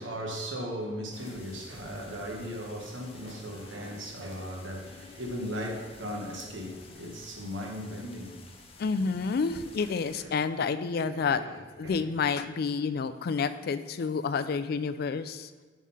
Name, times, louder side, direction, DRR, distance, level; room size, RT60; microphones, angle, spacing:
voice 1, 0.0-8.5 9.0-9.1 9.8-9.9 10.2-11.6 11.8-12.1, equal, 85° right, 1.2 m, -38 dB
sound 1, 1.1-10.3, left 3 dB, 30° left, 0.7 m, -52 dB
voice 2, 8.8-11.4 11.8-15.5, left 5 dB, 55° left, 0.3 m, -29 dB
5.6 x 4.8 x 5.5 m
head